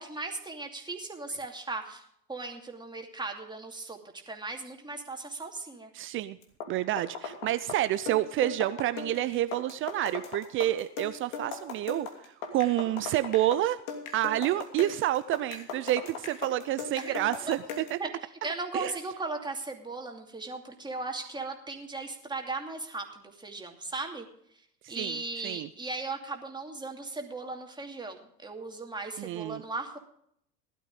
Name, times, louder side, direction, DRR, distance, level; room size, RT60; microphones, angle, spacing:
voice 1, 0.0-2.0 2.3-4.0 4.3-5.9 17.0-17.2 18.0-18.1 18.4-24.3 24.9-30.0, right 3 dB, 10° right, 3 dB, 2.6 m, -37 dB
voice 2, 5.9-6.4 6.7-12.1 12.5-13.8 14.1-18.0 18.7-18.9 24.8-25.7 29.2-29.6, right 14 dB, 25° right, 15 dB, 0.5 m, -29 dB
sound 1, 6.4-18.0, left 5 dB, 55° left, 2.9 m, -39 dB
16.5 x 12.5 x 3.7 m, 0.69 s
hypercardioid pair, 90°, 48 cm